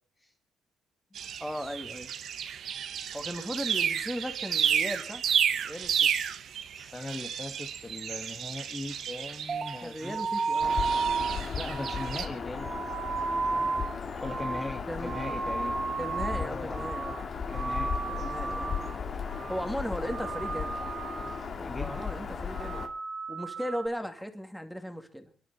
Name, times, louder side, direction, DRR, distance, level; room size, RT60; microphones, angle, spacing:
sound 1, 1.1-12.3, right 8 dB, 65° right, 1.3 m, -32 dB
voice 1, 1.4-2.1 3.1-5.2 5.6-6.1 9.8-10.8 14.9-15.2 16.0-17.2 18.1-19.0 19.5-20.8 21.7-22.8 23.3-25.3, equal, ahead, 2.5 m, -37 dB
voice 2, 6.7-10.2 11.5-12.8 14.1-15.8 16.3-16.8 17.5-18.0 21.6-22.0, left 2 dB, 20° left, 1.5 m, -39 dB
sound 2, 9.5-16.5 16.7-17.2 17.5-19.0 19.3-19.7 20.0-21.5 21.8-22.2 22.5-23.9, right 4 dB, 40° right, 1.7 m, -33 dB
Bird vocalization bird call bird song, 10.6-22.9, left 5 dB, 50° left, 2.5 m, -36 dB
26.0 x 11.0 x 4.3 m
cardioid pair, 90°, 0 cm